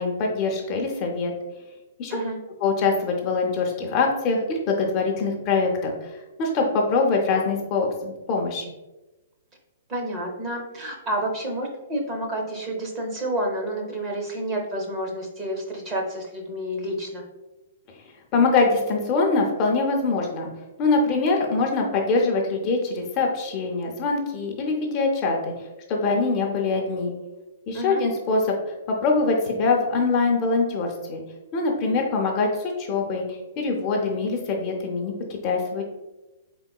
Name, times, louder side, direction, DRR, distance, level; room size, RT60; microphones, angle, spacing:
voice 1, 0.0-1.3 2.0-2.2 2.6-8.7 18.3-20.5 20.8-25.5 25.9-27.1 27.7-28.5 29.0-31.2 31.5-35.8, left 3 dB, 25° left, 0 dB, 0.4 m, -23 dB
voice 2, 9.9-17.2 27.7-28.0, right 1 dB, 20° right, 0 dB, 0.6 m, -29 dB
4.0 x 3.7 x 2.3 m, 1.0 s
hypercardioid pair, 170°, 0 cm